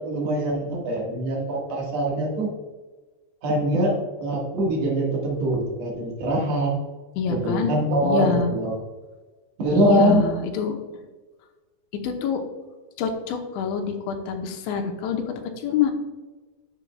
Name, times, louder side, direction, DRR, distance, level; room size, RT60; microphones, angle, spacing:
voice 1, 0.0-2.5 3.4-6.7 7.3-8.8 9.6-10.3, right 1 dB, 55° right, -2 dB, 1.9 m, -23 dB
voice 2, 7.2-7.7 8.0-8.5 9.7-10.8 12.0-12.4 13.0-15.3 15.6-15.9, left 6 dB, 85° left, 4 dB, 3.1 m, -25 dB
10.5 x 7.0 x 2.3 m, 1.2 s
omnidirectional pair, 5.2 m